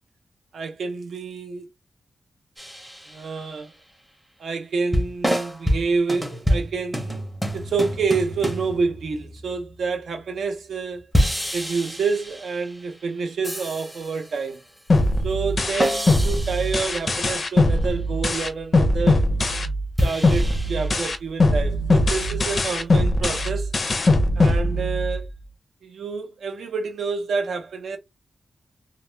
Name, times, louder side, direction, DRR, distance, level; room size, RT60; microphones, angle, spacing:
voice 1, 0.5-1.6 3.1-3.7 4.4-7.2 7.5-11.1 11.5-14.6 15.2-19.3 20.0-23.7 24.4-25.3 25.8-28.0, right 4 dB, 75° right, 0.6 m, -28 dB
sound 1, 2.6-3.5 4.9-9.9 11.1-12.9 13.4-14.4 15.8-17.5 20.0-20.9, equal, ahead, 0.6 m, -27 dB
sound 2, 14.9-19.9 20.2-25.3, left 2 dB, 40° left, 0.4 m, -21 dB
2.3 x 2.0 x 3.1 m
wide cardioid pair, 165°, 0 cm